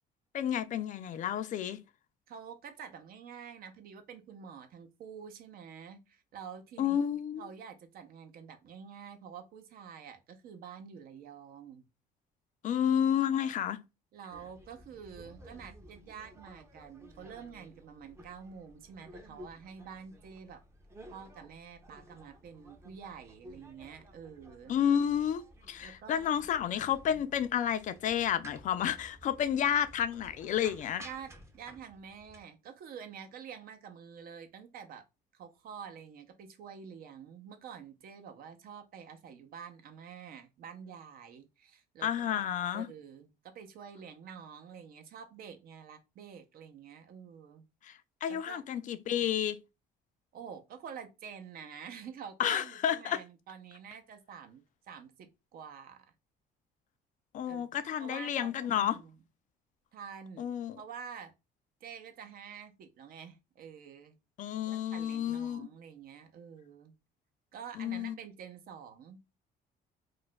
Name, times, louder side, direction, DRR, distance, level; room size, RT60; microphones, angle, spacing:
voice 1, 0.3-1.8 6.8-7.5 12.6-13.8 24.7-31.1 42.0-42.9 47.8-49.6 52.4-53.2 57.3-59.0 60.4-60.8 64.4-65.7 67.8-68.2, left 9 dB, 50° left, 0.4 m, -31 dB
voice 2, 2.3-7.0 7.4-11.8 14.1-20.6 21.1-24.7 25.8-26.5 26.8-27.2 31.0-35.1 35.3-42.4 42.7-47.6 48.3-48.6 50.3-56.1 57.5-57.6 58.0-59.1 59.9-61.3 61.8-64.1 64.6-66.9 67.5-69.4, right 7 dB, 60° right, 0.6 m, -48 dB
sound 1, 14.3-32.4, equal, 15° right, 0.6 m, -54 dB
2.4 x 2.2 x 3.9 m
cardioid pair, 110°, 17 cm